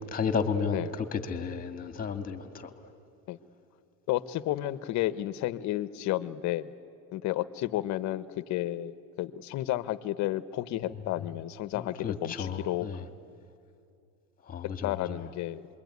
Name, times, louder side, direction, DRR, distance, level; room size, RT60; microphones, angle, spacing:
voice 1, 0.1-2.9 10.8-11.0 11.7-13.0 14.4-15.2, left 5 dB, 20° left, 8 dB, 2.1 m, -33 dB
voice 2, 4.1-6.7 7.1-12.9 14.8-15.7, left 14 dB, 50° left, 14 dB, 1.1 m, -32 dB
27.0 x 22.5 x 9.5 m, 2.6 s
supercardioid pair, 125°, 37 cm